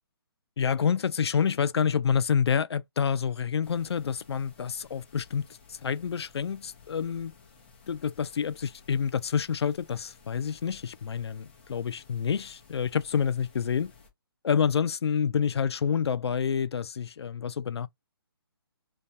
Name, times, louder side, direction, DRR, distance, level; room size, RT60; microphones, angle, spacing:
voice 1, 0.6-5.4 5.7-7.3 7.9-13.9 14.4-17.9, left 7 dB, 90° left, 0.4 m, -28 dB
sound 1, 3.6-14.1, left 5 dB, 25° left, 0.6 m, -56 dB
2.3 x 2.2 x 2.7 m
hypercardioid pair, 170°, 13 cm